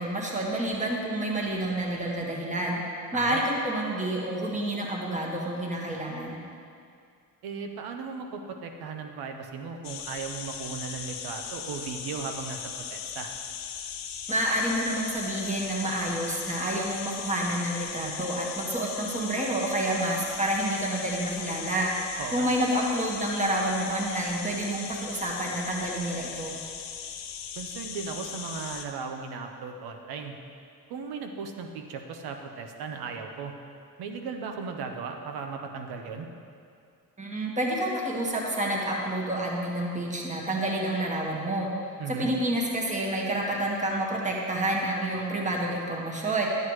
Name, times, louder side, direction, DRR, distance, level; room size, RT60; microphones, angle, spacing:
voice 1, 0.0-6.3 14.3-22.0 22.3-26.5 37.2-41.7 42.1-46.5, right 1 dB, 20° right, -2 dB, 1.7 m, -29 dB
voice 2, 7.4-12.6 12.9-13.3 22.2-22.5 27.6-30.4 30.9-33.5 34.0-36.3 42.0-42.3, right 5 dB, 80° right, 4 dB, 1.0 m, -37 dB
sound 1, 9.8-28.9, left 8 dB, 65° left, 0.9 m, -38 dB
12.0 x 9.2 x 3.2 m, 2.4 s
cardioid pair, 90°, 37 cm